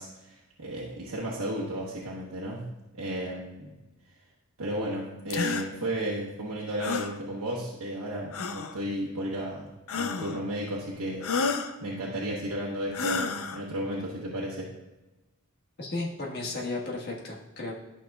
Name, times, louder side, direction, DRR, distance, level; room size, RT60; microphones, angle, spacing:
voice 1, 0.0-2.7 2.9-3.7 4.6-11.5 11.8-14.7, right 1 dB, 80° right, -5 dB, 1.1 m, -34 dB
sound 1, 5.3-5.7 6.8-7.2 8.3-8.8 9.9-10.4 11.2-11.7 12.9-13.6, left 5 dB, 70° left, 0.5 m, -30 dB
voice 2, 15.8-17.7, left 2 dB, 50° left, -2 dB, 1.4 m, -34 dB
12.0 x 6.0 x 2.3 m, 1.1 s
head